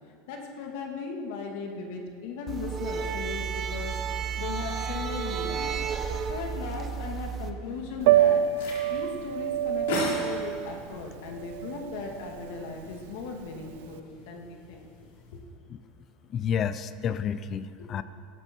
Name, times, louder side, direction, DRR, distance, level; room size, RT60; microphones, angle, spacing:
voice 1, 0.3-5.7 6.3-14.9 15.3-15.4 17.8-17.9, left 5 dB, 70° left, 2 dB, 2.3 m, -38 dB
sound 1, 2.5-7.5, right 6 dB, 25° right, 1.0 m, -32 dB
sound 2, 7.6-15.4, left 2 dB, 85° left, 4.4 m, -39 dB
Piano, 8.0-13.9, right 11 dB, 70° right, 0.4 m, -27 dB
voice 2, 16.3-18.0, left 8 dB, 30° left, 14 dB, 0.6 m, -30 dB
17.5 x 13.5 x 4.6 m, 2.2 s
supercardioid pair, 145°, 0 cm